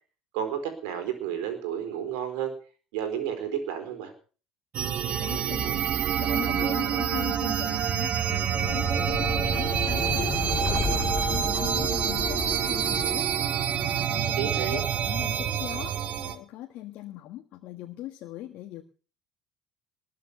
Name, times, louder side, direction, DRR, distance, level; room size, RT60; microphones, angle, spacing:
voice 1, 0.3-2.5 2.9-4.1 14.4-14.8, right 9 dB, 70° right, 8 dB, 4.3 m, -31 dB
sound 1, 4.7-16.4, right 9 dB, 50° right, 1.7 m, -27 dB
voice 2, 5.2-5.9 6.2-10.3 10.6-13.3 13.8-18.8, left 14 dB, 60° left, 4 dB, 1.5 m, -40 dB
sound 2, 8.6-13.8, left 5 dB, 40° left, 2.2 m, -33 dB
20.5 x 7.4 x 7.1 m, 0.38 s
hypercardioid pair, 65°, 3 cm